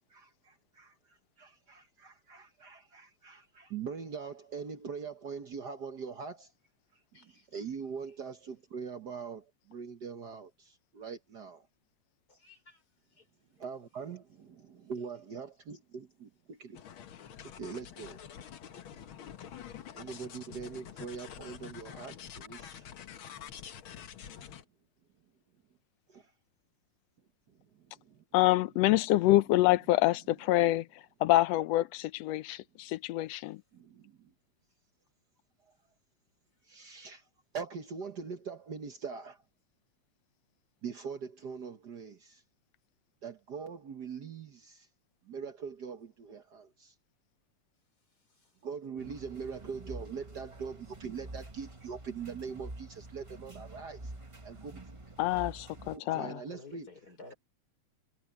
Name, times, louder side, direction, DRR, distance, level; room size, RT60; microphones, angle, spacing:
voice 1, 0.1-6.5 7.2-11.7 13.6-16.8 17.6-18.2 19.9-22.8 26.1-26.3 27.5-28.2 33.7-34.3 36.7-37.2 37.5-39.4 40.8-42.4 43.2-44.9 45.2-46.9 48.6-54.1 54.4-54.8 55.9-56.9, right 6 dB, 55° right, 1.1 m, -42 dB
voice 2, 7.1-7.5 12.3-12.8 13.2-13.3 56.5-57.3, left 3 dB, 30° left, 5.2 m, -52 dB
sound 1, 16.7-24.6, left 9 dB, 55° left, 1.6 m, -47 dB
voice 3, 28.3-33.6 55.2-56.4, left 16 dB, 75° left, 1.6 m, -27 dB
sound 2, 49.0-56.0, right 2 dB, 35° right, 0.4 m, -47 dB
omnidirectional pair, 3.4 m